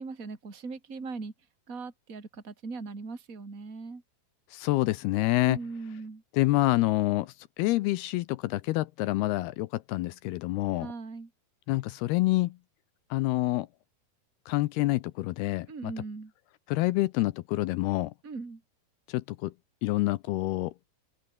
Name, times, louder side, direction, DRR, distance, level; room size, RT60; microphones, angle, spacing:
voice 1, 0.0-1.3 1.7-4.0 5.4-6.2 10.8-11.3 15.7-16.3 18.2-18.6, right 4 dB, 20° right, 3.4 m, -39 dB
voice 2, 4.5-5.6 6.3-10.9 11.7-12.5 13.1-13.7 14.5-15.9 16.7-18.1 19.1-19.5 19.8-20.7, left 19 dB, 80° left, 2.4 m, -27 dB
open air
omnidirectional pair, 5.1 m